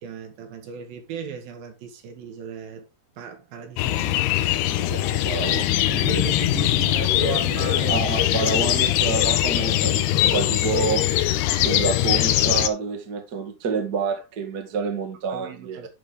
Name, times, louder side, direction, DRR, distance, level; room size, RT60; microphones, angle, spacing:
voice 1, 0.0-2.9 3.2-4.6 5.8-8.0 8.4-8.5 15.3-15.9, right 8 dB, 70° right, 3.1 m, -36 dB
sound 1, 3.8-12.7, left 13 dB, 85° left, 2.8 m, -21 dB
voice 2, 4.7-5.9 7.9-11.1 11.6-15.9, right 5 dB, 45° right, 1.3 m, -28 dB
11.5 x 5.2 x 3.7 m
omnidirectional pair, 4.7 m